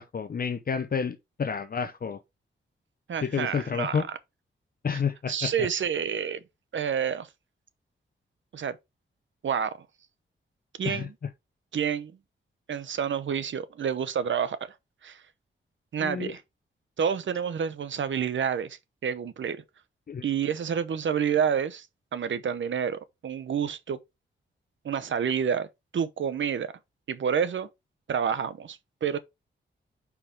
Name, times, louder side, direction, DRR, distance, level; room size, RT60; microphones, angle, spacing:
voice 1, 0.0-2.2 3.2-4.1 4.8-5.7 10.9-11.1 16.0-16.3 20.1-20.2, left 6 dB, 45° left, 0.7 m, -30 dB
voice 2, 3.1-4.0 4.9-5.0 5.3-6.4 6.7-7.3 8.5-8.8 9.4-9.7 10.8-11.1 11.7-12.1 12.7-14.6 15.0-15.2 15.9-16.4 17.0-19.6 20.2-21.9 22.1-24.0 24.8-25.7 25.9-26.7 27.1-27.7 28.1-29.2, right 7 dB, 70° right, 0.8 m, -28 dB
5.1 x 4.8 x 4.8 m
cardioid pair, 85°, 21 cm